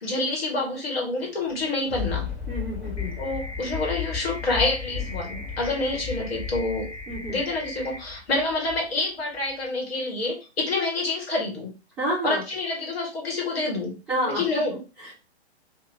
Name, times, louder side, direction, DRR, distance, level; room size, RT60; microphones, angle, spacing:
voice 1, 0.0-2.3 3.2-6.9 7.3-11.7 12.2-13.9 14.3-14.8, left 2 dB, 65° left, -1 dB, 1.4 m, -27 dB
Thunder, 1.4-9.0 9.5-9.6, left 7 dB, 20° left, 1.5 m, -34 dB
voice 2, 2.5-3.2 7.1-7.4 12.0-12.4 14.1-14.5 15.0-15.1, equal, 5° right, -11 dB, 0.4 m, -29 dB
sound 1, 3.0-8.0, left 1 dB, 85° left, 1.0 m, -40 dB
2.8 x 2.2 x 2.7 m, 0.31 s
figure-of-eight pair, 120°, 33 cm